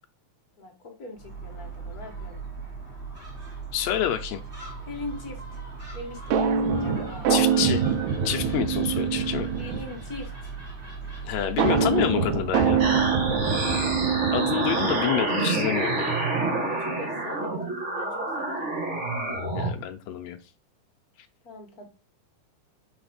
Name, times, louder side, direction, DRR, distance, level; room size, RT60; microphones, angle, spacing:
voice 1, 0.6-2.4 4.8-5.4 5.9-7.4 9.5-10.5 13.4-13.9 16.7-18.7 21.4-21.8, left 2 dB, 55° left, 2 dB, 1.0 m, -41 dB
Gull seagull, 1.1-13.6, right 4 dB, 20° right, 2.2 m, -39 dB
voice 2, 3.7-4.4 7.3-7.8 8.2-9.5 11.2-12.8 14.3-16.2 19.5-20.4, left 11 dB, 80° left, 6 dB, 1.6 m, -28 dB
sound 1, 6.3-10.0 11.6-15.2, right 6 dB, 90° right, 2.4 m, -24 dB
sound 2, 12.8-19.7, right 2 dB, 65° right, 0.7 m, -28 dB
5.8 x 3.9 x 5.0 m, 0.31 s
omnidirectional pair, 3.6 m